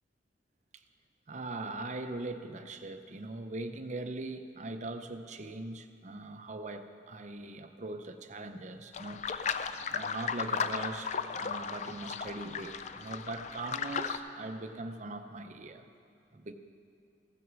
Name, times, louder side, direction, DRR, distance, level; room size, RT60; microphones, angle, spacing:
voice 1, 1.3-9.3 9.9-15.8 16.3-16.5, right 2 dB, 40° right, 7 dB, 0.5 m, -41 dB
sound 1, 8.9-14.2, left 6 dB, 40° left, 0.3 m, -35 dB
15.5 x 6.2 x 6.1 m, 2.5 s
head